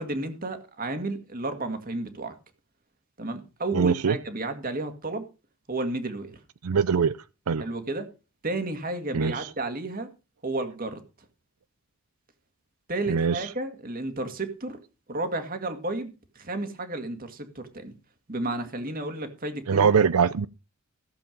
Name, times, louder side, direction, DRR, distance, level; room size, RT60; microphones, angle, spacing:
voice 1, 0.0-2.3 3.2-5.3 5.7-6.4 7.6-8.1 8.4-10.1 10.4-11.0 12.9-14.8 15.1-17.9 18.3-19.9, right 2 dB, 40° right, 2.0 m, -32 dB
voice 2, 3.7-4.1 6.6-7.2 7.5-7.6 9.1-9.5 13.1-13.5 19.7-20.5, right 6 dB, 85° right, 0.5 m, -22 dB
15.5 x 7.7 x 5.2 m
head